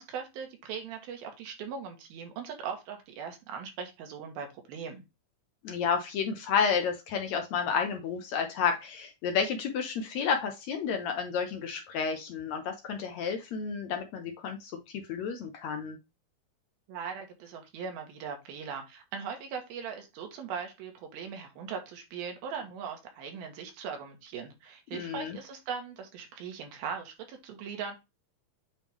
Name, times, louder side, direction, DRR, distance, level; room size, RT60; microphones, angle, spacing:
voice 1, 0.0-5.0 16.9-28.0, right 6 dB, 80° right, 4 dB, 3.1 m, -39 dB
voice 2, 5.6-16.0 24.9-25.4, left 6 dB, 80° left, 5 dB, 1.5 m, -31 dB
8.9 x 3.1 x 3.5 m, 0.23 s
omnidirectional pair, 4.3 m